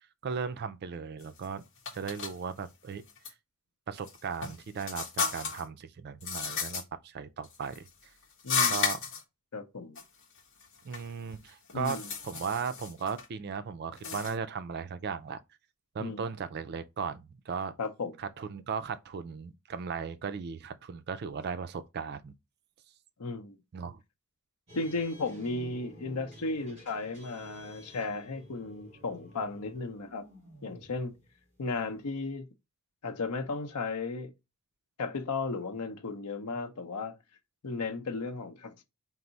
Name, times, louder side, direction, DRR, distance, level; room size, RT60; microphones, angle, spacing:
voice 1, 0.2-1.6 1.9-3.0 3.9-7.9 8.7-9.0 10.8-12.0 12.2-15.4 15.9-17.8 18.2-22.3 23.7-24.0, right 6 dB, 45° right, 0.4 m, -36 dB
sound 1, 1.2-1.5 1.9-2.3 3.1-3.3 4.0-5.7 6.2-6.8 7.4-7.9 8.4-9.2 10.0-10.1 10.4-11.1 11.5-13.3 13.9-14.4, left 5 dB, 55° left, 0.8 m, -33 dB
voice 2, 8.4-8.8 9.5-10.0 11.7-12.1 16.0-16.2 17.8-18.1 23.2-23.6 24.7-30.3 30.6-31.2 31.6-32.5 33.0-34.3 35.0-37.1 37.6-38.8, left 3 dB, 90° left, 0.7 m, -35 dB
sound 2, 24.7-32.0, right 1 dB, 30° right, 2.0 m, -52 dB
4.5 x 2.0 x 3.9 m
head